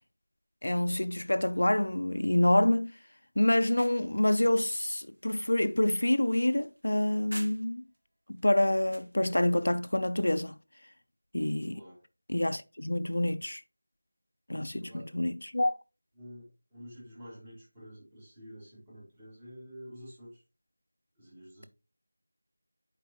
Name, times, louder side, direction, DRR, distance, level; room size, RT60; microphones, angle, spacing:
voice 1, 0.6-2.9 3.4-7.8 8.3-10.5 11.3-11.8 12.3-13.6 14.5-14.8 15.1-15.8, left 1 dB, 75° left, 0.6 m, -27 dB
sound 1, 3.4-8.0 8.4-9.2, right 1 dB, 80° right, 1.7 m, -50 dB
voice 2, 11.7-12.0 14.6-15.2 16.1-20.4 21.2-21.7, equal, 20° right, 3.4 m, -49 dB
10.0 x 4.7 x 3.0 m
figure-of-eight pair, 170°, 0 cm